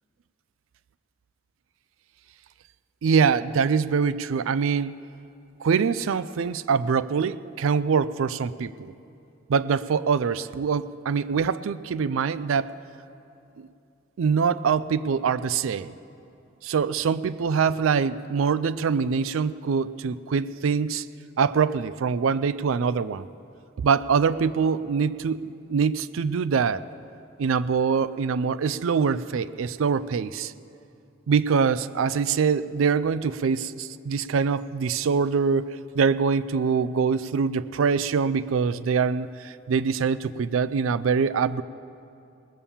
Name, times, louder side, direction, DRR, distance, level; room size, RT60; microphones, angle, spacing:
voice 1, 3.0-4.9 5.6-8.9 9.5-12.7 13.6-13.7 14.2-15.9 16.6-21.1 21.4-23.3 23.8-26.8 27.4-30.5 31.3-41.6, right 6 dB, 85° right, 16 dB, 0.4 m, -24 dB
20.0 x 7.0 x 7.2 m, 2.6 s
head